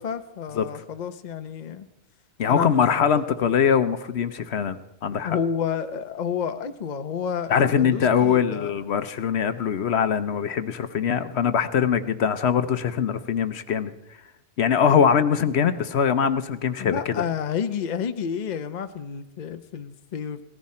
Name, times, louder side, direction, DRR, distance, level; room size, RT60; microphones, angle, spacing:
voice 1, 0.0-1.9 2.5-3.3 5.2-8.7 16.8-20.4, left 7 dB, 45° left, 9 dB, 0.8 m, -30 dB
voice 2, 2.4-5.4 7.5-13.9 14.6-17.2, left 7 dB, 70° left, 11 dB, 1.0 m, -22 dB
18.0 x 14.5 x 4.3 m, 0.91 s
omnidirectional pair, 1.2 m